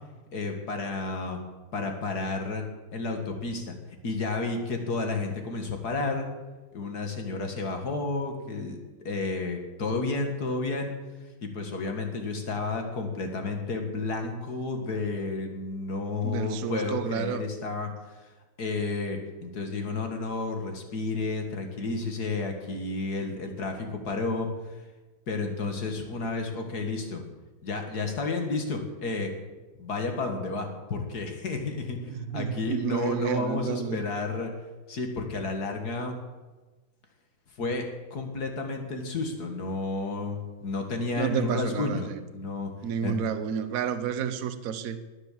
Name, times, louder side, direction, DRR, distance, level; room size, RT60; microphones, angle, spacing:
voice 1, 0.3-1.4 1.7-2.6 2.9-3.8 4.0-6.3 6.7-10.9 11.4-17.9 18.2-18.3 18.6-24.5 25.3-27.2 27.6-29.3 29.8-34.5 34.9-36.2 37.6-42.7 43.0-43.2, left 3 dB, 50° left, 4 dB, 2.2 m, -31 dB
voice 2, 16.2-17.4 32.1-34.0 41.1-42.2 42.8-45.0, right 8 dB, 55° right, 11 dB, 1.1 m, -30 dB
19.5 x 7.5 x 7.4 m, 1.2 s
omnidirectional pair, 2.3 m